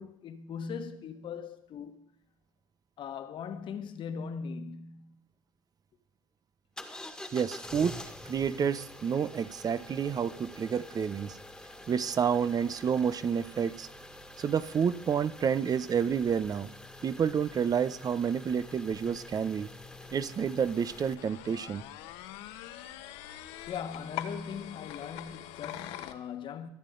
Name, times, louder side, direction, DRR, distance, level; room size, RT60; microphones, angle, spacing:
voice 1, 0.0-2.0 3.0-5.2 23.7-26.7, left 6 dB, 50° left, 1.5 m, -39 dB
sound 1, 6.8-21.1, left 1 dB, 5° left, 1.8 m, -47 dB
voice 2, 7.3-11.4 11.9-13.9 14.4-16.7 17.0-19.7 20.1-21.8, right 7 dB, 35° right, 0.7 m, -29 dB
sound 2, 18.5-26.1, left 13 dB, 70° left, 1.2 m, -44 dB
23.0 x 9.1 x 3.9 m
hypercardioid pair, 75°, 11 cm